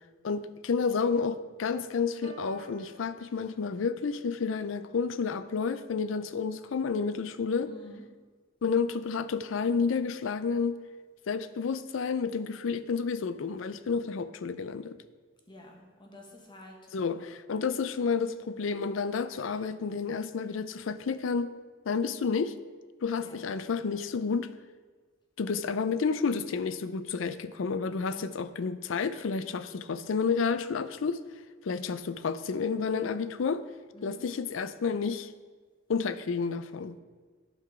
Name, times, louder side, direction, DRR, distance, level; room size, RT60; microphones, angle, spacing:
voice 1, 0.2-7.7 8.6-10.8 11.3-15.0 16.9-21.5 21.9-22.6 23.0-24.5 25.4-31.2 31.6-33.6 34.0-35.3 35.9-37.0, left 5 dB, 85° left, 14 dB, 0.5 m, -30 dB
Piano, 2.2-4.2, right 4 dB, 60° right, 2.3 m, -51 dB
voice 2, 7.6-8.0 15.5-17.3 19.3-19.6 23.2-23.4 28.1-28.4 33.9-34.3, left 1 dB, 25° left, 0 dB, 1.5 m, -50 dB
10.5 x 5.8 x 4.8 m, 1.5 s
head